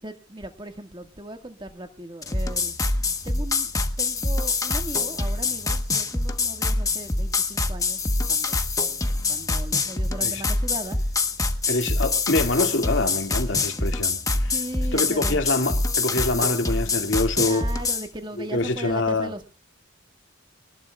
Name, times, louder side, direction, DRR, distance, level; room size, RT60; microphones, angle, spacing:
voice 1, 0.0-2.8 3.2-3.7 4.0-8.0 8.3-8.5 9.3-11.0 14.5-15.4 17.4-19.5, right 1 dB, 25° right, 1.8 m, -37 dB
sound 1, 2.2-18.1, left 3 dB, 15° left, 1.2 m, -25 dB
voice 2, 11.7-14.5 14.9-17.6 18.5-19.3, left 2 dB, 65° left, 2.4 m, -25 dB
27.0 x 19.5 x 2.4 m
head